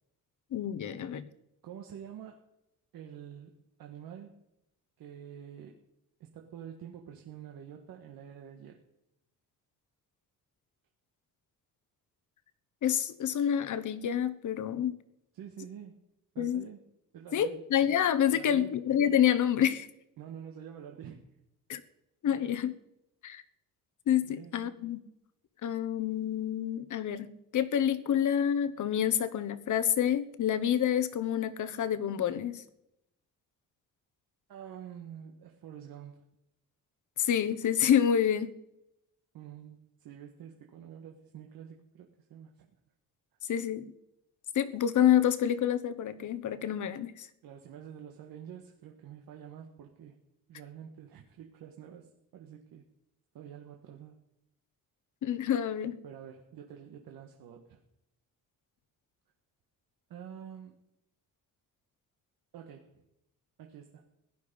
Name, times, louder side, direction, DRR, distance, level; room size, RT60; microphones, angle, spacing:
voice 1, 0.5-1.3 12.8-15.0 16.4-16.7 17.3-19.9 21.7-21.8 22.2-22.7 23.2-23.4 24.1-25.0 25.6-32.6 37.2-38.5 43.5-43.9 44.5-47.3 55.2-56.0, left 9 dB, 60° left, 13 dB, 1.2 m, -28 dB
voice 2, 1.6-2.5 2.9-4.4 5.0-5.8 6.2-8.8 15.3-16.0 16.3-16.8 17.1-17.6 18.3-18.8 20.2-21.2 22.3-22.5 24.2-24.7 34.5-36.3 39.3-42.7 47.4-50.2 50.5-52.8 53.3-54.2 56.0-57.8 60.1-60.8 62.5-63.0 63.6-64.1, right 9 dB, 90° right, 2 dB, 1.6 m, -47 dB
16.5 x 11.5 x 5.3 m, 0.82 s
cardioid pair, 145°, 34 cm